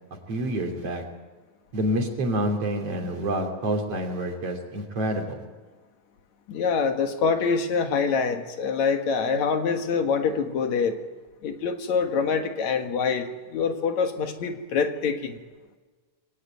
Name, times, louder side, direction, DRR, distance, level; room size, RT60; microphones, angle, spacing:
voice 1, 0.3-1.0 1.7-5.4, right 1 dB, 55° right, 3 dB, 3.9 m, -27 dB
voice 2, 6.5-11.0 11.4-15.4, left 5 dB, 70° left, 6 dB, 2.9 m, -25 dB
23.5 x 18.0 x 9.1 m, 1.4 s
omnidirectional pair, 3.3 m